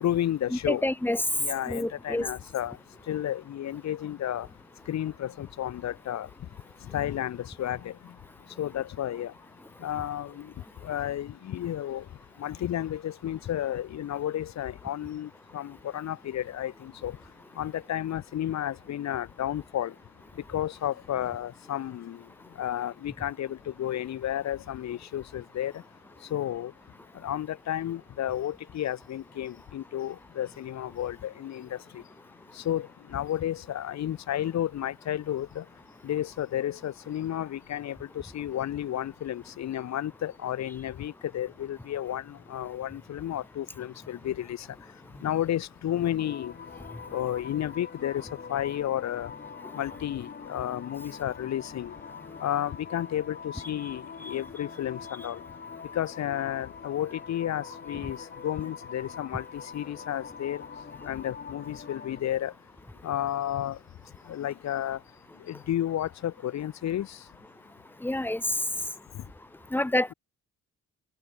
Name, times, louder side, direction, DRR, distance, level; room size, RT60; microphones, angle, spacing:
voice 1, 0.0-0.8 1.4-2.8 3.1-4.5 4.9-6.3 6.9-7.9 8.6-9.3 9.8-10.5 10.8-12.0 12.4-17.2 17.6-19.9 20.5-22.2 22.6-25.8 26.3-26.7 27.2-32.0 32.6-35.6 36.0-44.7 45.2-46.5 47.1-48.2 48.5-49.3 49.7-51.9 52.4-55.4 55.9-58.2 58.4-60.6 61.0-62.5 63.0-63.8 64.3-65.0 65.5-67.2, left 11 dB, 65° left, 1.3 m, -32 dB
voice 2, 0.7-1.2 1.7-2.3 68.0-68.4 69.7-70.1, left 1 dB, 5° left, 0.7 m, -27 dB
sound 1, 46.2-62.2, left 6 dB, 35° left, 1.8 m, -44 dB
cardioid pair, 90°, 30 cm